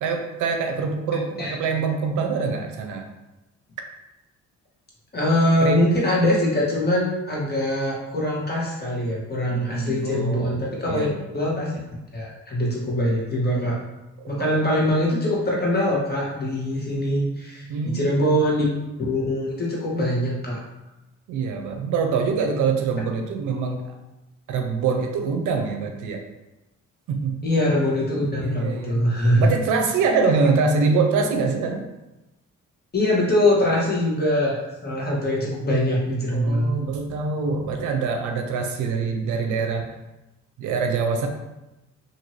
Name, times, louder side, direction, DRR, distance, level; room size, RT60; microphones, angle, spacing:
voice 1, 0.0-3.1 5.6-5.8 9.5-10.5 10.8-11.3 14.2-14.5 17.7-18.1 21.3-24.0 24.5-26.2 27.1-27.4 28.3-29.0 29.4-31.8 36.3-40.0 40.6-41.3, right 4 dB, 80° right, 4 dB, 0.5 m, -24 dB
voice 2, 5.1-11.1 11.3-11.8 12.1-13.8 14.3-18.6 19.1-20.6 27.4-29.5 32.9-36.8, left 1 dB, 35° left, -4 dB, 1.1 m, -23 dB
2.7 x 2.6 x 3.1 m, 0.98 s
cardioid pair, 90°, 30 cm